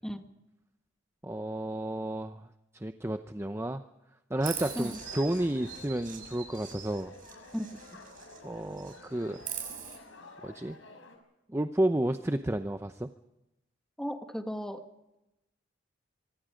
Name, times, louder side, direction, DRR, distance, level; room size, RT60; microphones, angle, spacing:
voice 1, 1.2-2.4 2.7-3.8 4.3-7.1 8.4-9.4 10.4-10.8 11.5-13.1, right 1 dB, 15° right, 8 dB, 0.7 m, -31 dB
sound 1, 4.3-11.2, left 2 dB, 80° left, 5.5 m, -51 dB
Chirp tweet, 4.4-8.4 8.7-10.0, right 8 dB, 45° right, 6.5 m, -42 dB
voice 2, 7.5-8.0 14.0-14.8, equal, 5° left, 5 dB, 1.8 m, -36 dB
25.5 x 24.0 x 5.2 m, 0.92 s
head